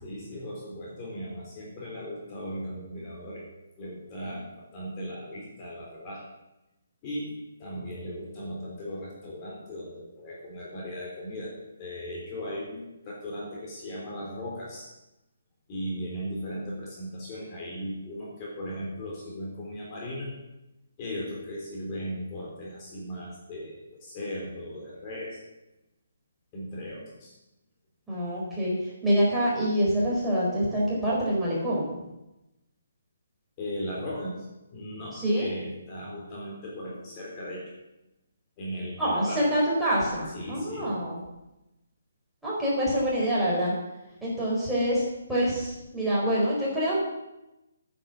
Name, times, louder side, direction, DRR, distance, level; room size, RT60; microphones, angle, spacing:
voice 1, 0.0-3.5 3.8-6.3 7.0-15.0 15.7-20.3 21.0-25.4 26.5-27.4 33.6-34.5 34.7-37.7 38.6-39.5 40.3-40.9, equal, 25° left, -4 dB, 3.7 m, -37 dB
voice 2, 28.1-32.0 35.1-35.5 39.0-41.2 42.4-43.7 44.2-47.0, equal, 5° right, -8 dB, 4.5 m, -26 dB
10.0 x 9.0 x 7.2 m, 0.95 s
hypercardioid pair, 155°, 0 cm